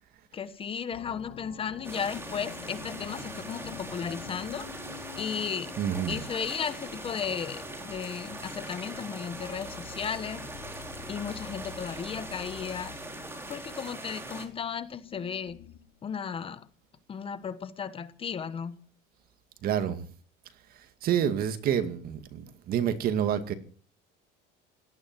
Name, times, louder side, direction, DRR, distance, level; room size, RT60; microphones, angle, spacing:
voice 1, 0.3-4.7 5.2-5.7 6.1-10.4 11.1-12.9 13.5-15.6 16.0-16.7 17.1-18.8, left 7 dB, 30° left, 13 dB, 1.2 m, -35 dB
sound 1, 0.9-16.0, left 14 dB, 80° left, 1.6 m, -48 dB
sound 2, 1.8-14.5, right 2 dB, 10° right, 3.6 m, -41 dB
voice 2, 5.8-6.2 19.6-20.1 20.7-23.5, right 9 dB, 50° right, 10 dB, 2.2 m, -28 dB
18.0 x 12.5 x 6.2 m, 0.43 s
cardioid pair, 135°, 19 cm